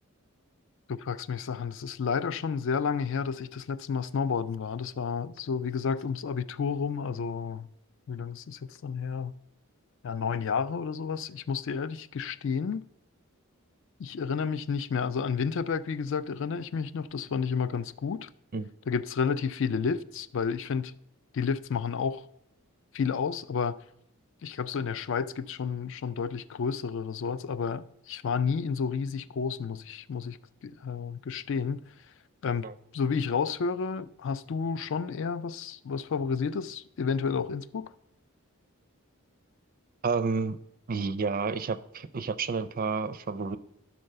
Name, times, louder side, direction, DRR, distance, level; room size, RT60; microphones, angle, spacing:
voice 1, 0.9-7.7 8.1-9.3 10.0-12.8 14.0-18.3 18.9-20.9 21.3-22.3 22.9-23.8 24.4-30.4 30.6-31.8 32.4-32.7 32.9-37.9, left 6 dB, 60° left, 0.4 m, -31 dB
voice 2, 40.0-40.6 40.9-43.6, right 4 dB, 40° right, 0.4 m, -30 dB
11.5 x 3.9 x 6.6 m
head